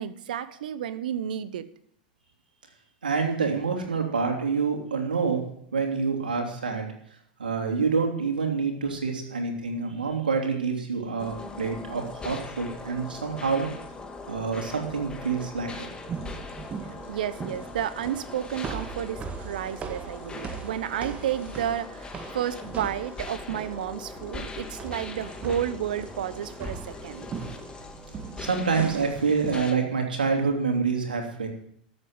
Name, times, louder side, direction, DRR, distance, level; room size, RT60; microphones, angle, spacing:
voice 1, 0.0-1.7 16.8-27.3, right 10 dB, 70° right, 15 dB, 1.0 m, -32 dB
voice 2, 3.0-5.4 5.7-6.9 7.4-13.7 14.3-15.9 28.4-31.5, right 5 dB, 90° right, 2 dB, 3.2 m, -27 dB
sound 1, 11.2-29.8, left 3 dB, 20° left, 1.9 m, -41 dB
sound 2, 16.1-29.6, right 6 dB, 30° right, 1.7 m, -40 dB
13.5 x 8.2 x 7.9 m, 0.68 s
hypercardioid pair, 95°, 5 cm